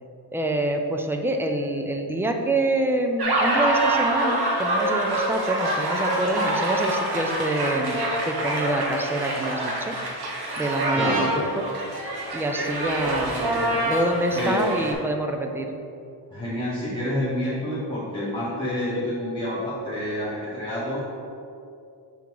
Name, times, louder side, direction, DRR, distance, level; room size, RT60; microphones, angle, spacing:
voice 1, 0.3-10.0 10.6-11.4 12.3-15.7, right 1 dB, 5° right, 3 dB, 0.3 m, -26 dB
sound 1, 3.2-14.9, right 1 dB, 55° right, 1.0 m, -26 dB
voice 2, 10.9-11.3 14.4-14.9 16.3-21.1, left 1 dB, 10° left, -11 dB, 1.1 m, -28 dB
7.0 x 3.8 x 4.6 m, 2.6 s
wide cardioid pair, 150°, 44 cm